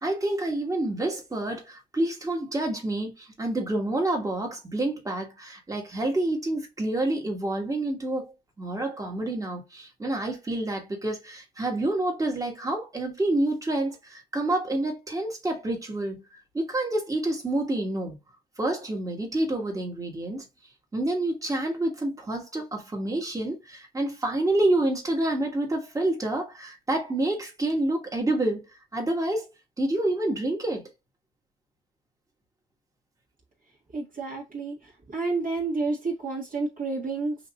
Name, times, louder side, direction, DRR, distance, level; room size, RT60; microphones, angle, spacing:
voice 1, 0.0-16.2 16.5-18.1 18.6-20.4 20.9-29.5 29.8-30.9, right 1 dB, 15° right, 1.6 m, -28 dB
voice 2, 33.9-34.8 35.1-37.4, right 3 dB, 45° right, 1.7 m, -29 dB
5.6 x 2.7 x 2.3 m
cardioid pair, 90°, 20 cm